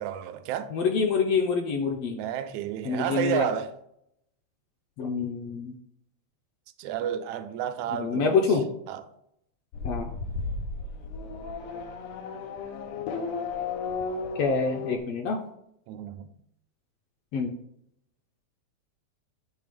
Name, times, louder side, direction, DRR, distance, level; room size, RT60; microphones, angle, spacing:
voice 1, 0.0-0.7 2.1-3.7 6.8-8.4 8.9-9.0 15.9-16.3, right 10 dB, 80° right, 1.9 m, -31 dB
voice 2, 0.7-2.2 2.8-3.5 5.0-5.7 7.9-8.6 9.8-10.1 14.4-15.4 17.3-17.5, left 5 dB, 75° left, 1.5 m, -26 dB
Race car auto racing / Accelerating revving vroom, 9.7-15.0, left 4 dB, 90° left, 1.2 m, -34 dB
8.3 x 3.4 x 5.1 m
omnidirectional pair, 3.4 m